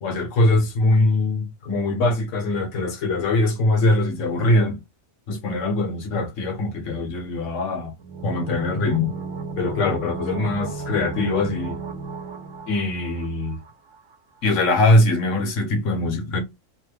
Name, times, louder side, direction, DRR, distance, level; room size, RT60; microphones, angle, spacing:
voice 1, 0.0-4.8 5.3-7.9 8.2-9.1 9.6-11.8 12.7-13.6 14.4-16.4, left 2 dB, 70° left, 1.2 m, -22 dB
sound 1, 8.0-13.7 13.9-14.0, right 4 dB, 75° right, 1.2 m, -33 dB
3.0 x 2.2 x 3.2 m
omnidirectional pair, 1.4 m